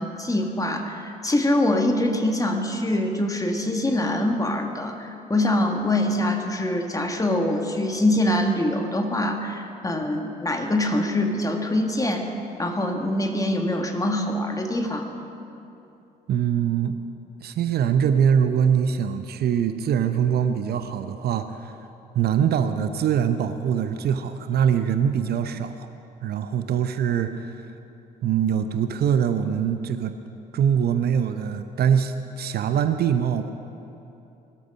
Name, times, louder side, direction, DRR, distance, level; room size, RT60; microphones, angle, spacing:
voice 1, 0.0-12.3 12.6-15.1, left 1 dB, 15° left, 3 dB, 1.9 m, -24 dB
voice 2, 16.3-17.0 17.4-21.7 22.1-25.9 26.2-27.7 28.2-30.1 30.5-33.5, right 8 dB, 50° right, 9 dB, 0.7 m, -23 dB
20.0 x 13.0 x 5.4 m, 2.9 s
figure-of-eight pair, 45°, 21 cm